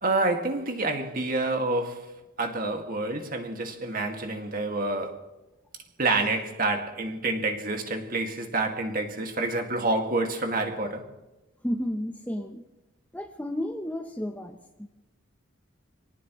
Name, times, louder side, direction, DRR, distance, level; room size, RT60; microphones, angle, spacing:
voice 1, 0.0-2.1 2.4-5.2 6.0-11.0, right 2 dB, 40° right, 2.1 m, -28 dB
voice 2, 11.6-12.6 13.1-14.9, equal, 5° left, 0.8 m, -32 dB
25.5 x 18.0 x 3.1 m
head